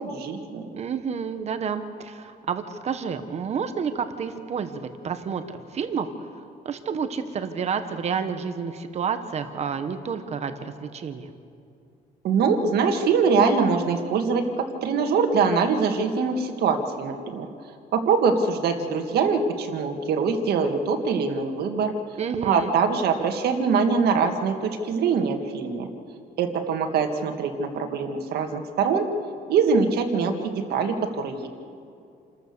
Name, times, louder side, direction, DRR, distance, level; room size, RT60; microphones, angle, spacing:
voice 1, 0.0-0.7 12.2-17.5 17.9-21.9 22.4-25.9 26.4-29.1 29.5-31.5, right 5 dB, 75° right, 5 dB, 1.9 m, -23 dB
voice 2, 0.7-6.1 6.6-11.3 22.2-22.7, right 6 dB, 40° right, 9 dB, 1.2 m, -30 dB
28.5 x 14.0 x 6.9 m, 2.6 s
cardioid pair, 155°, 17 cm